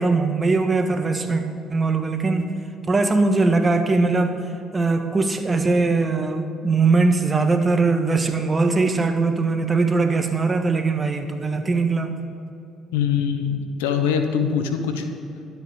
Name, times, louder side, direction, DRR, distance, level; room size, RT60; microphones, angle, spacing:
voice 1, 0.0-1.4 1.7-2.5 2.9-4.4 4.7-12.2, right 3 dB, 30° right, 6 dB, 1.5 m, -21 dB
voice 2, 12.9-15.0, left 7 dB, 85° left, 7 dB, 1.0 m, -23 dB
12.5 x 8.1 x 7.1 m, 2.6 s
hypercardioid pair, 60°, 0 cm